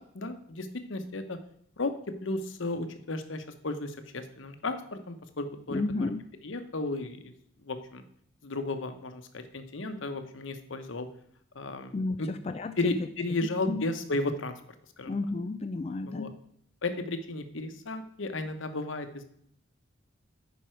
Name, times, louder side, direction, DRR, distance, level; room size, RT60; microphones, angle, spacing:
voice 1, 0.1-1.4 1.8-1.9 2.2-6.1 6.4-7.3 7.6-8.0 8.4-11.1 11.5-11.9 12.2-12.3 12.8-14.5 15.0-15.1 16.1-16.3 16.8-19.2, left 2 dB, 80° left, 8 dB, 0.9 m, -34 dB
voice 2, 5.7-6.2 11.9-12.8 13.7-13.9 15.1-16.4, left 3 dB, 30° left, 7 dB, 0.3 m, -32 dB
9.2 x 5.4 x 4.5 m, 0.70 s
head